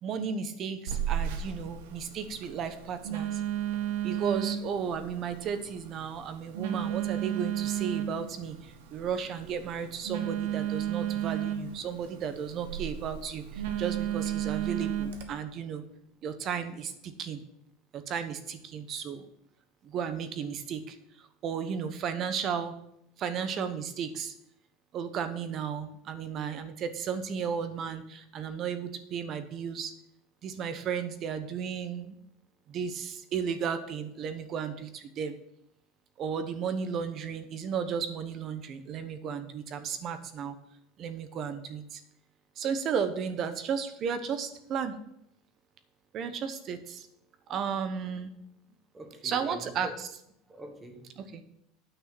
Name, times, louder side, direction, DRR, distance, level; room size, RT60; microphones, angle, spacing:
voice 1, 0.0-3.4 4.0-15.8 16.2-17.4 17.9-19.3 19.8-22.7 23.2-24.3 24.9-29.9 30.4-32.1 32.7-35.4 36.2-40.6 41.0-42.0 42.6-45.0 46.1-47.1 47.5-48.3 49.2-49.9 51.2-51.4, right 7 dB, 35° right, 1.0 m, -34 dB
Telephone, 0.9-15.2, right 10 dB, 80° right, 1.3 m, -34 dB
voice 2, 48.9-49.9 50.5-51.1, right 1 dB, 15° right, 1.3 m, -44 dB
9.0 x 6.3 x 6.1 m
supercardioid pair, 145°, 0 cm